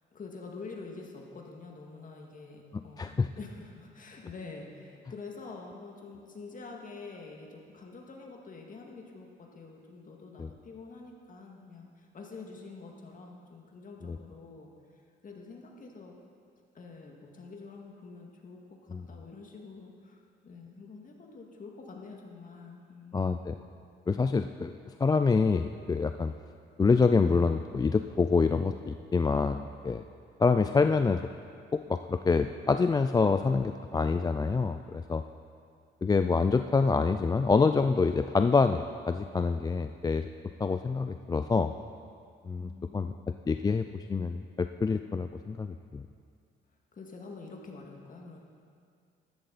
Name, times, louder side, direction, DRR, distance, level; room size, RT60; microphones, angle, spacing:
voice 1, 0.1-14.7 15.2-16.2 16.7-23.5 42.6-43.2 46.9-48.4, left 4 dB, 40° left, 0 dB, 2.0 m, -47 dB
voice 2, 3.0-3.3 10.4-10.5 14.0-14.2 18.9-19.0 23.1-23.5 24.1-26.3 26.8-30.0 30.4-31.2 31.7-35.2 36.0-40.3 40.6-41.7 42.5-43.1 43.5-46.1, left 4 dB, 20° left, 8 dB, 0.3 m, -26 dB
13.5 x 11.5 x 4.1 m, 2.2 s
cardioid pair, 90°, 20 cm